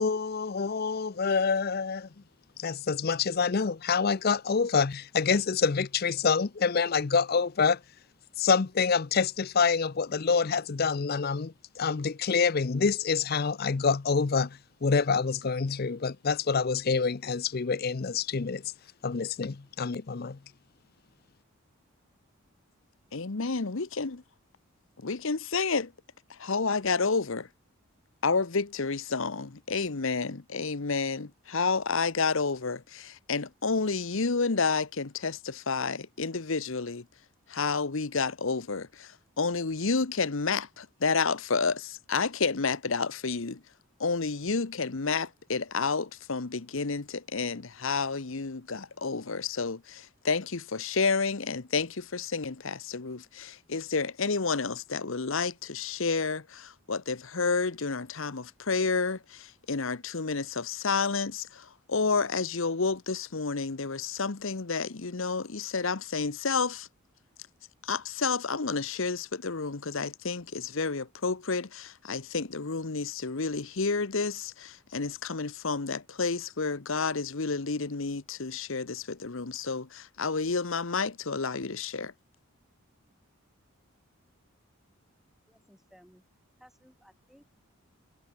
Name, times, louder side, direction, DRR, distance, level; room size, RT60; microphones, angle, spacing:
voice 1, 0.0-2.1 2.6-7.8 8.4-18.6 19.0-20.4, left 5 dB, 45° left, 0.5 m, -27 dB
voice 2, 23.1-24.2 25.0-25.9 26.3-27.5 28.2-37.0 37.5-43.6 44.0-66.9 67.8-82.1, left 4 dB, 65° left, 1.0 m, -30 dB
voice 3, 85.5-86.2 86.6-87.4, equal, ahead, 3.3 m, -58 dB
head